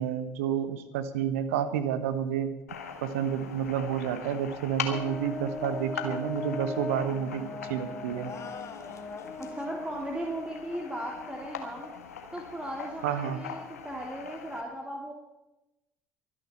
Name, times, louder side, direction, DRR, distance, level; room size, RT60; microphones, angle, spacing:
voice 1, 0.0-2.5 3.0-8.3 13.0-13.4, right 9 dB, 70° right, 12 dB, 1.2 m, -30 dB
sound 1, 2.7-14.6, left 6 dB, 80° left, 1.6 m, -41 dB
Brass instrument, 4.9-11.6, left 3 dB, 20° left, 1.4 m, -39 dB
sound 2, 8.1-9.6, left 6 dB, 40° left, 2.1 m, -45 dB
voice 2, 9.4-11.9 12.3-15.1, right 1 dB, 10° right, 0 dB, 2.8 m, -37 dB
24.0 x 10.0 x 4.3 m, 0.96 s
figure-of-eight pair, 55°, 8 cm